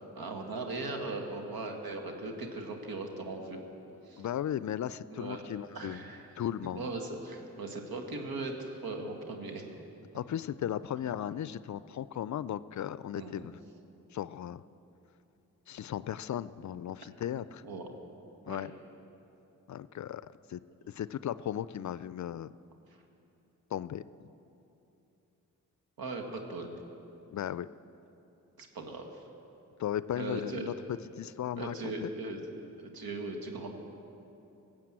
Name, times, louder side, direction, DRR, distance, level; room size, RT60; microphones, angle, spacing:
voice 1, 0.1-3.6 4.1-4.2 5.1-5.4 5.7-6.3 6.7-9.7 13.1-13.3 17.6-17.8 18.5-18.6 26.0-26.7 28.6-29.2 30.2-30.7 31.6-33.7, right 3 dB, 70° right, 3 dB, 1.8 m, -39 dB
voice 2, 4.2-6.0 6.4-6.9 10.1-13.6 14.1-14.6 15.7-17.6 18.5-18.7 19.7-20.6 20.9-22.5 23.7-24.3 27.3-27.7 29.8-32.1, left 10 dB, 50° left, 16 dB, 0.4 m, -36 dB
18.0 x 7.5 x 7.6 m, 2.9 s
supercardioid pair, 45°, 36 cm